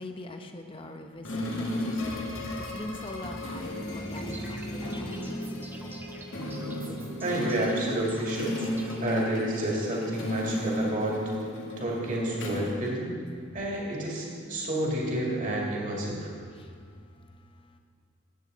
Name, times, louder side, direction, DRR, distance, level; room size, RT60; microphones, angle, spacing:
voice 1, 0.0-2.0 2.3-4.7 4.9-5.4 16.5-17.8, left 2 dB, 25° left, 5 dB, 0.7 m, -43 dB
sound 1, 1.2-13.5, left 1 dB, 80° left, 1.8 m, -34 dB
sound 2, 4.1-9.4, right 2 dB, 10° right, 0.7 m, -46 dB
voice 2, 7.2-8.6 9.0-11.2 11.8-13.1 13.5-16.3, right 1 dB, 40° right, -3 dB, 2.4 m, -30 dB
14.0 x 9.0 x 4.0 m, 2.1 s
head